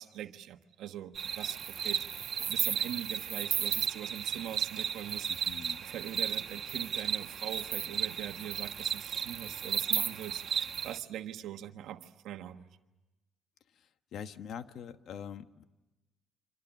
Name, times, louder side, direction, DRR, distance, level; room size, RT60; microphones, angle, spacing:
voice 1, 0.0-2.1 2.4-12.7, right 11 dB, 85° right, 1.3 m, -42 dB
sound 1, 1.1-11.0, right 8 dB, 60° right, 1.5 m, -34 dB
voice 2, 5.4-5.8 14.1-15.6, left 8 dB, 70° left, 1.3 m, -43 dB
28.5 x 25.5 x 7.3 m
cardioid pair, 90°, 0 cm